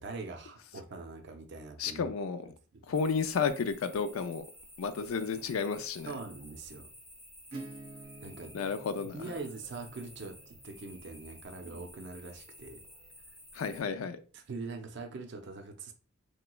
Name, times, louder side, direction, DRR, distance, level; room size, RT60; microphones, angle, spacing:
voice 1, 0.0-2.1 2.7-2.8 6.1-6.9 8.2-8.5 9.1-12.8 14.3-15.9, right 3 dB, 55° right, 0.5 m, -43 dB
voice 2, 1.8-2.5 2.9-4.4 4.8-6.1 8.5-9.3 13.5-14.2, left 5 dB, 80° left, 0.4 m, -32 dB
sound 1, 2.9-13.8, equal, 10° left, 0.7 m, -53 dB
Acoustic guitar / Strum, 7.5-13.0, right 2 dB, 85° right, 0.8 m, -51 dB
3.2 x 3.0 x 2.2 m
head